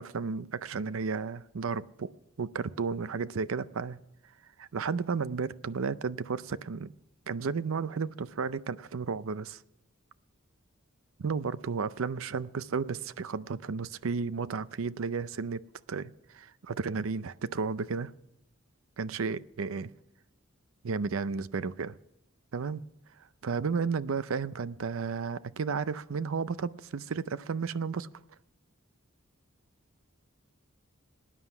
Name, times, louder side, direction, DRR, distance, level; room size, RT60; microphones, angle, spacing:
voice 1, 0.0-2.1 2.4-4.0 4.6-6.9 7.3-9.6 11.2-18.1 19.0-19.9 20.8-21.9 22.5-22.8 23.4-28.1, right 5 dB, 75° right, 16 dB, 0.5 m, -33 dB
19.0 x 9.9 x 6.0 m, 0.86 s
head